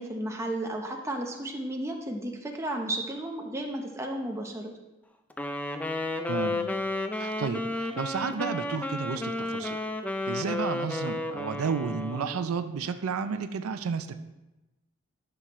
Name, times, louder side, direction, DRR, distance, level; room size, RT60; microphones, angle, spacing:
voice 1, 0.0-4.7, right 1 dB, 15° right, 1 dB, 0.8 m, -33 dB
Wind instrument woodwind instrument, 5.3-12.5, left 2 dB, 5° left, 0.4 m, -32 dB
voice 2, 6.3-6.7 7.2-9.8 10.3-14.2, right 5 dB, 90° right, 9 dB, 0.5 m, -32 dB
11.0 x 5.9 x 3.1 m, 1.0 s
head